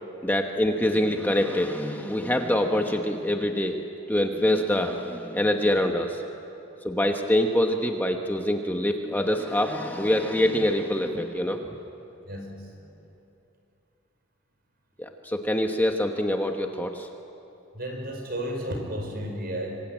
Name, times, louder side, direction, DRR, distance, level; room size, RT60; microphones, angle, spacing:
voice 1, 0.2-3.8 4.1-6.2 6.8-11.7 15.0-17.1, left 1 dB, 10° left, 3 dB, 1.1 m, -25 dB
voice 2, 12.2-12.7 17.7-19.8, equal, 50° right, 2 dB, 5.3 m, -33 dB
26.0 x 25.5 x 8.9 m, 2.9 s
head